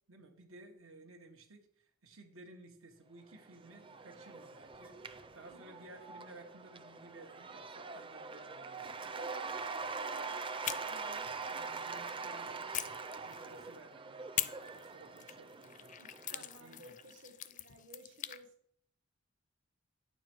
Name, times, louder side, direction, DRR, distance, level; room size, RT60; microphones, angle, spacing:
voice 1, 0.1-9.1 11.5-15.9 16.3-16.9, right 2 dB, 85° right, 1 dB, 1.6 m, -56 dB
Cheering / Applause / Crowd, 3.3-16.8, right 4 dB, 25° right, 0.6 m, -44 dB
voice 2, 8.8-11.2 16.0-18.5, right 2 dB, 60° right, 7 dB, 1.3 m, -55 dB
sound 1, 10.6-12.2 12.7-13.8 14.4-18.4, left 11 dB, 40° left, 0.4 m, -42 dB
9.4 x 7.1 x 4.6 m, 0.67 s
head